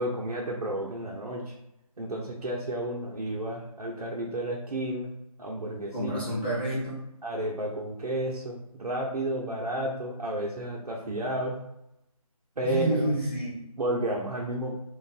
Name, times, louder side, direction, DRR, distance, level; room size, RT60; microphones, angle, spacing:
voice 1, 0.0-1.5 2.0-5.1 5.4-6.2 7.2-11.6 12.6-13.1 13.8-14.7, right 1 dB, 75° right, -3 dB, 0.9 m, -31 dB
voice 2, 5.9-7.0 12.6-13.7, right 1 dB, 15° left, -7 dB, 0.8 m, -29 dB
3.1 x 2.5 x 4.1 m, 0.84 s
figure-of-eight pair, 170°, 19 cm